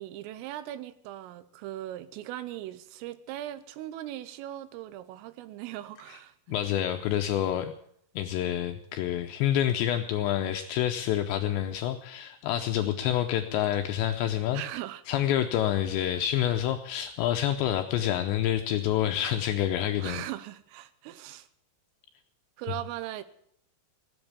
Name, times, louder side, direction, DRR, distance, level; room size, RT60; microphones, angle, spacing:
voice 1, 0.0-6.6 14.5-15.2 20.0-21.5 22.6-23.2, right 13 dB, 85° right, 3.4 m, -39 dB
voice 2, 6.5-7.7 8.2-14.6 15.1-20.2, left 11 dB, 80° left, 2.6 m, -28 dB
17.5 x 8.1 x 8.6 m
omnidirectional pair, 5.9 m